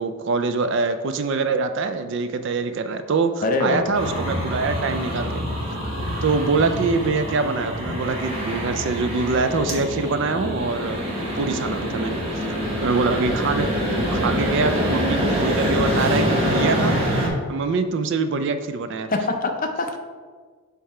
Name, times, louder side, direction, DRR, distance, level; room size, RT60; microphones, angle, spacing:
voice 1, 0.0-5.3 6.2-11.0 11.4-12.2 12.8-19.1, right 4 dB, 55° right, 9 dB, 0.4 m, -24 dB
voice 2, 3.4-3.8 19.1-20.0, left 3 dB, 35° left, 4 dB, 0.5 m, -23 dB
sound 1, 3.9-17.3, equal, 25° right, 1.1 m, -25 dB
6.4 x 3.5 x 4.3 m, 1.5 s
head